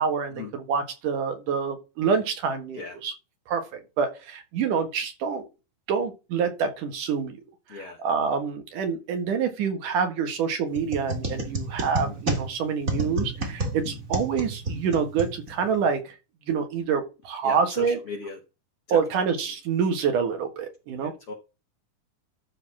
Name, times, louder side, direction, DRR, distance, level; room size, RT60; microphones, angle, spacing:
voice 1, 0.0-3.1 3.5-5.4 5.9-7.3 7.7-16.1 16.5-18.0 18.9-21.1, right 6 dB, 70° right, 3.2 m, -27 dB
sound 1, 10.7-15.8, right 2 dB, 30° right, 2.2 m, -31 dB
voice 2, 17.4-18.4 18.9-19.0 21.0-21.3, left 4 dB, 60° left, 1.5 m, -37 dB
12.5 x 4.1 x 6.0 m
omnidirectional pair, 3.9 m